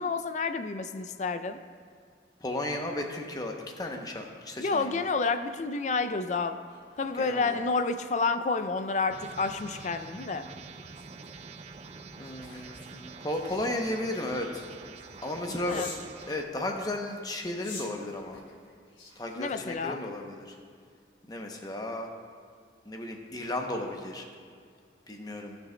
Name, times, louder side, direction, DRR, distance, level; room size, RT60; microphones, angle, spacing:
voice 1, 0.0-1.6 4.6-6.6 7.0-10.5 15.6-15.9 19.4-20.1, left 4 dB, 40° left, 10 dB, 0.3 m, -29 dB
voice 2, 2.4-5.0 7.2-7.6 12.2-14.7 15.2-15.9 16.3-18.4 19.2-20.5 21.3-22.1 22.8-24.2 25.1-25.6, left 1 dB, 20° left, 2 dB, 0.7 m, -34 dB
sound 1, 5.2-16.1 16.8-20.4 20.8-21.0, left 3 dB, 85° left, 1.2 m, -51 dB
sound 2, 9.1-16.4, right 4 dB, 35° right, 0.4 m, -46 dB
17.0 x 6.1 x 2.2 m, 2.1 s
head